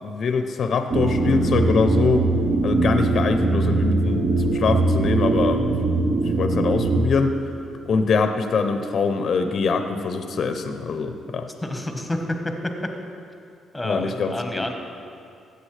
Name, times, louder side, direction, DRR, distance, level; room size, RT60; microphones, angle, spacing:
voice 1, 0.0-2.2 2.6-5.9 6.4-7.4 7.8-11.5 13.8-14.7, left 4 dB, 55° left, 7 dB, 0.6 m, -23 dB
sound 1, 0.9-7.0, right 2 dB, 50° right, 0.8 m, -21 dB
voice 2, 11.6-12.9 13.7-14.7, left 1 dB, 10° left, 4 dB, 1.1 m, -28 dB
14.0 x 8.0 x 3.3 m, 2.5 s
cardioid pair, 90°, 0 cm